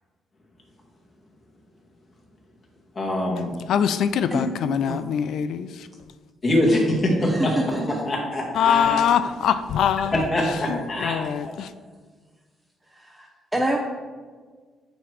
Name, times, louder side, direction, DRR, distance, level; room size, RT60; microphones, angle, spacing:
voice 1, 3.0-3.5 6.4-7.6 7.8-9.0 10.1-11.5, left 1 dB, 40° left, -2 dB, 2.0 m, -24 dB
voice 2, 3.7-5.7 8.6-10.2 11.0-11.7, left 8 dB, 75° left, 12 dB, 0.3 m, -23 dB
voice 3, 7.2-8.0 13.0-13.8, right 1 dB, 10° right, -1 dB, 0.7 m, -26 dB
8.8 x 3.2 x 4.8 m, 1.5 s
cardioid pair, 90°, 0 cm